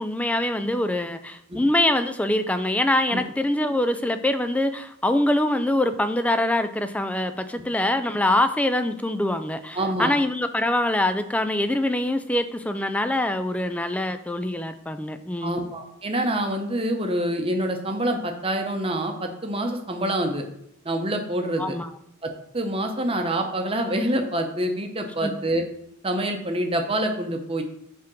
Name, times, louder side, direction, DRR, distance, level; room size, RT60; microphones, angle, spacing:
voice 1, 0.0-15.7 21.6-21.9 25.2-25.3, left 1 dB, 5° left, 9 dB, 0.3 m, -24 dB
voice 2, 9.7-10.1 15.4-20.4 20.8-21.8 22.2-25.6 26.0-27.6, right 1 dB, 25° right, 4 dB, 0.9 m, -26 dB
7.5 x 3.6 x 6.0 m, 0.74 s
head